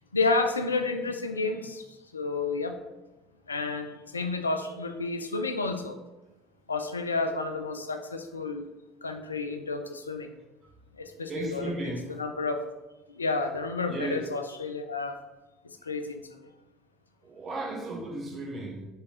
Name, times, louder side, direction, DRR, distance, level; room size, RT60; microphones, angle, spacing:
voice 1, 0.1-1.8 2.1-2.8 3.5-6.0 6.7-8.7 9.0-10.3 10.9-11.7 12.1-12.6 13.1-15.2 15.8-16.4, left 3 dB, 85° left, 7 dB, 0.3 m, -30 dB
voice 2, 11.3-12.2 13.9-14.3 17.2-18.9, right 2 dB, 40° right, 1 dB, 1.0 m, -35 dB
4.6 x 3.4 x 2.8 m, 1.0 s
figure-of-eight pair, 65°, 0 cm